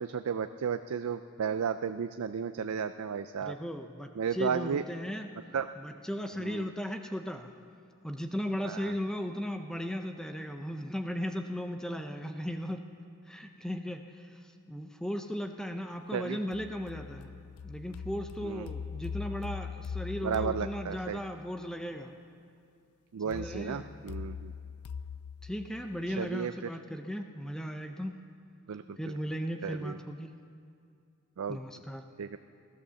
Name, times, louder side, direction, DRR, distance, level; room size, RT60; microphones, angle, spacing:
voice 1, 0.0-3.6 4.2-4.8 5.5-5.7 6.4-6.7 8.6-8.9 16.1-16.4 18.4-18.7 20.2-21.2 23.1-24.5 26.2-26.5 28.7-29.0 29.6-30.0 31.4-31.6 32.2-32.4, right 7 dB, 80° right, 10 dB, 0.4 m, -33 dB
voice 2, 3.4-5.3 5.8-7.5 8.0-12.8 13.3-17.3 17.6-22.1 23.2-24.0 25.4-28.2 29.0-30.3 31.5-32.0, equal, 5° left, 5 dB, 0.6 m, -36 dB
sound 1, 16.5-21.5 23.3-26.3, left 6 dB, 85° left, 0.4 m, -41 dB
15.5 x 12.5 x 7.0 m, 2.4 s
head